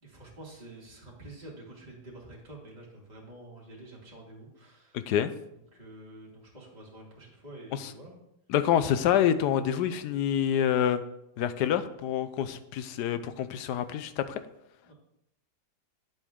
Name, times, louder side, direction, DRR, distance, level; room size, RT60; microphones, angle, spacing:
voice 1, 0.0-5.1 5.7-8.2 14.8-14.9, right 1 dB, 25° right, -4 dB, 2.4 m, -48 dB
voice 2, 8.5-11.0 11.4-14.4, left 9 dB, 90° left, 12 dB, 1.2 m, -27 dB
9.1 x 7.7 x 3.7 m, 0.81 s
omnidirectional pair, 1.7 m